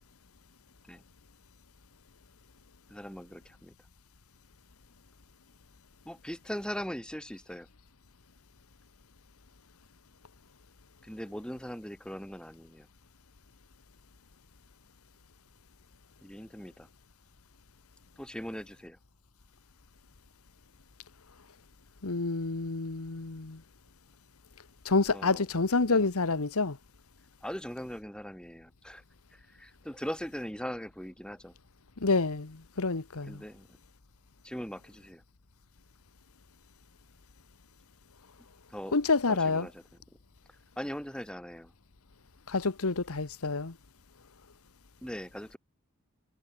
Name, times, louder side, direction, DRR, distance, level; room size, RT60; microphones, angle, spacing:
voice 1, 2.9-3.7 6.0-7.7 11.0-12.9 16.2-16.9 18.2-19.0 25.1-25.4 25.9-26.1 27.4-29.0 29.3-31.5 33.3-33.7 34.4-35.2 38.7-39.0 39.3-39.8 40.8-41.7 45.0-45.6, equal, 5° left, 4.2 m, -40 dB
voice 2, 22.0-23.6 24.8-26.8 32.0-33.4 38.9-39.7 42.5-43.7, left 3 dB, 75° left, 1.2 m, -28 dB
head